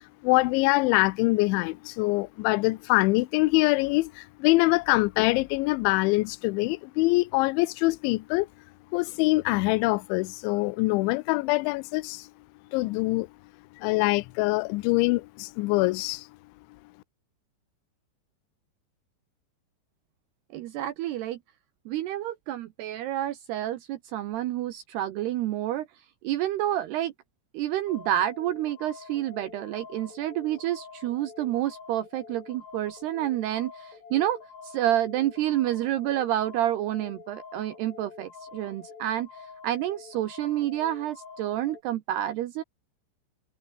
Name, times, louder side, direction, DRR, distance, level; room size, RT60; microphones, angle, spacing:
voice 1, 0.2-8.5 8.9-12.3 12.7-13.3 13.8-16.2, left 22 dB, 80° left, 2.8 m, -24 dB
voice 2, 20.5-21.4 21.9-25.9 26.2-27.1 27.5-34.4 34.6-39.3 39.6-42.6, right 13 dB, 75° right, 2.4 m, -29 dB
sound 1, 27.9-41.8, left 5 dB, 55° left, 8.2 m, -47 dB
omnidirectional pair, 6.0 m